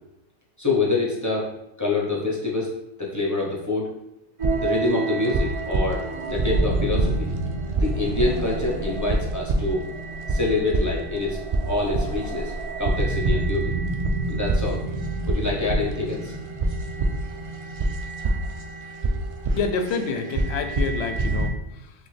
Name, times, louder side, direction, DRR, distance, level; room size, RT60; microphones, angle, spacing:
voice 1, 0.6-1.5 1.8-2.7 3.0-3.9 4.6-7.3 7.8-9.8 10.3-11.4 11.6-12.5 12.8-13.7 14.3-14.8 15.3-16.3, left 3 dB, 15° left, -4 dB, 0.8 m, -26 dB
sound 1, 4.4-21.5, right 2 dB, 60° right, 0.3 m, -26 dB
voice 2, 19.6-21.9, left 5 dB, 70° left, 7 dB, 0.8 m, -28 dB
6.0 x 2.2 x 3.3 m, 0.85 s
omnidirectional pair, 1.2 m